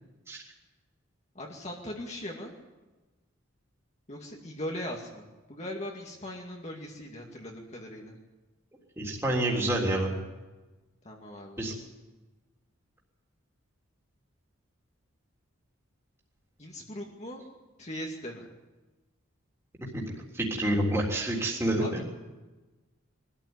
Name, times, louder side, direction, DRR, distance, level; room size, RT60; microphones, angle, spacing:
voice 1, 1.3-2.5 4.1-8.2 11.0-11.8 16.6-17.4 17.8-18.5 21.8-22.0, left 1 dB, 30° left, -1 dB, 2.3 m, -39 dB
voice 2, 9.0-10.1 11.6-11.7 19.9-20.0 20.3-21.8, right 1 dB, 10° right, -3 dB, 3.6 m, -28 dB
23.5 x 14.0 x 9.8 m, 1.2 s
head